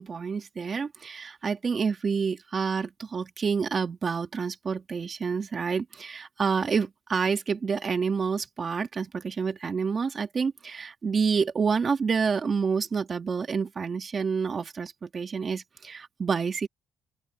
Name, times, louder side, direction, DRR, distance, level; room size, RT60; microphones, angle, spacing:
voice 1, 0.0-16.7, right 5 dB, 40° right, 2.4 m, -28 dB
open air
cardioid pair, 90°, 0 cm